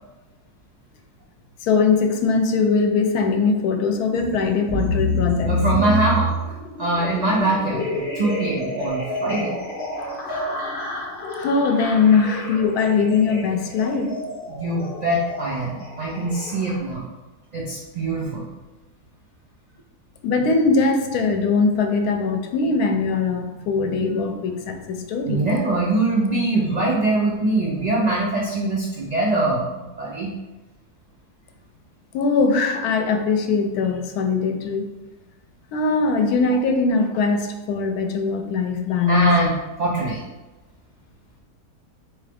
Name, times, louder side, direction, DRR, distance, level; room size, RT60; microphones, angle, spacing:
voice 1, 1.6-5.6 11.4-14.2 20.2-25.4 32.1-34.9 35.7-39.4, left 4 dB, 85° left, 5 dB, 1.1 m, -21 dB
sound 1, 4.1-16.8, left 1 dB, 45° left, 0.8 m, -28 dB
voice 2, 5.5-6.3 6.8-9.6 14.5-17.1 17.5-18.5 25.2-30.3 39.1-39.5 39.8-40.2, right 2 dB, 80° right, -5 dB, 0.3 m, -23 dB
3.7 x 3.1 x 3.4 m, 1.1 s
omnidirectional pair, 1.6 m